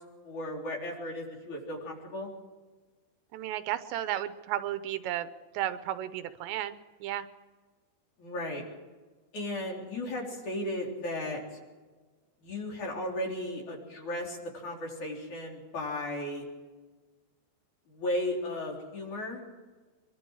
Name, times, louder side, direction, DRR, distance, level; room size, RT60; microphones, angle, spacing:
voice 1, 0.2-2.3 8.2-8.6 9.3-11.6 12.4-16.5 17.9-19.4, left 1 dB, 45° left, -1 dB, 4.9 m, -35 dB
voice 2, 3.3-5.3 5.5-7.3, right 12 dB, 85° right, 11 dB, 3.0 m, -33 dB
24.5 x 23.5 x 4.8 m, 1.3 s
omnidirectional pair, 5.1 m